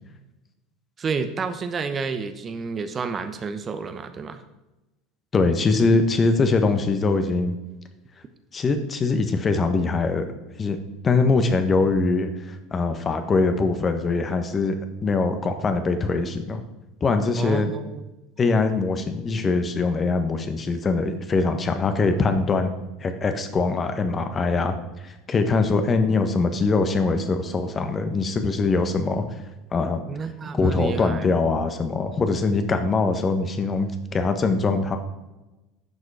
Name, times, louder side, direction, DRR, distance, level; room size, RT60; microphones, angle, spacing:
voice 1, 1.0-4.4 17.4-18.0 18.5-18.7 30.1-31.2, right 5 dB, 35° right, 9 dB, 0.9 m, -30 dB
voice 2, 5.3-7.6 8.5-10.3 10.6-10.8 11.0-14.8 15.0-16.6 17.0-17.7 18.4-22.7 23.0-24.8 25.0-29.4 29.7-30.0 30.5-35.0, left 3 dB, 30° left, 8 dB, 1.3 m, -22 dB
10.5 x 6.4 x 4.9 m, 1.0 s
hypercardioid pair, 80°, 0 cm